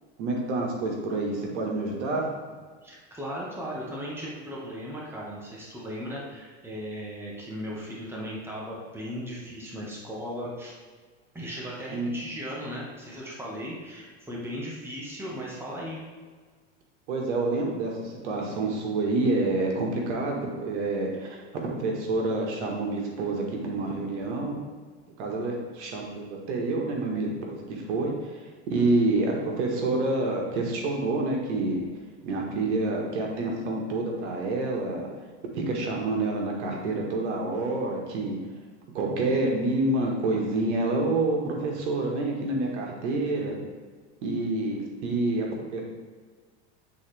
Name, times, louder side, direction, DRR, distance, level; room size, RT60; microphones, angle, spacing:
voice 1, 0.2-2.3 11.9-12.1 17.1-24.6 25.2-31.8 32.2-35.1 35.5-38.4 38.9-43.6 44.2-45.8, right 2 dB, 75° right, 0 dB, 1.6 m, -28 dB
voice 2, 2.8-10.7 11.3-16.0, equal, 5° right, -5 dB, 1.4 m, -37 dB
8.4 x 4.0 x 3.4 m, 1.5 s
supercardioid pair, 130°, 35 cm